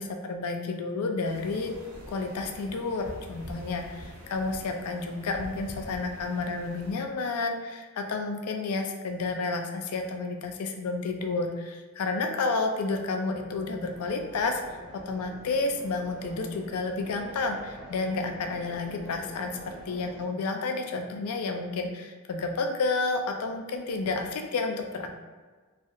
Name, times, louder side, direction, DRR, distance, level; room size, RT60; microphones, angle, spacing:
voice 1, 0.0-1.7 2.1-14.8 15.1-25.1, left 3 dB, 80° left, 4 dB, 0.4 m, -31 dB
sound 1, 1.2-6.9, equal, 65° right, 0.8 m, -45 dB
sound 2, 13.8-20.2, right 1 dB, 90° right, 1.2 m, -46 dB
3.1 x 2.3 x 2.6 m, 1.4 s
head